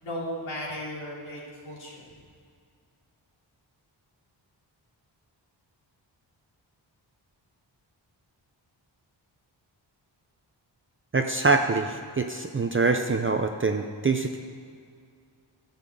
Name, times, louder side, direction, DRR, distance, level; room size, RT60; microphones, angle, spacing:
voice 1, 0.0-2.3, equal, 85° left, -5 dB, 3.1 m, -36 dB
voice 2, 11.1-14.4, right 3 dB, 25° right, 5 dB, 0.6 m, -25 dB
11.5 x 5.6 x 7.9 m, 2.2 s
cardioid pair, 70°, 46 cm